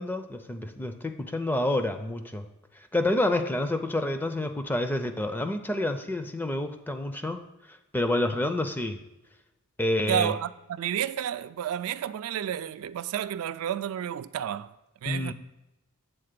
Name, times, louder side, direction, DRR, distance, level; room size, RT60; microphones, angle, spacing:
voice 1, 0.0-2.5 2.9-7.4 7.9-9.0 9.8-10.3 15.1-15.3, left 1 dB, 10° left, 0.4 m, -28 dB
voice 2, 10.1-14.7 15.0-15.3, right 10 dB, 70° right, 0.3 m, -31 dB
7.7 x 3.8 x 6.6 m
head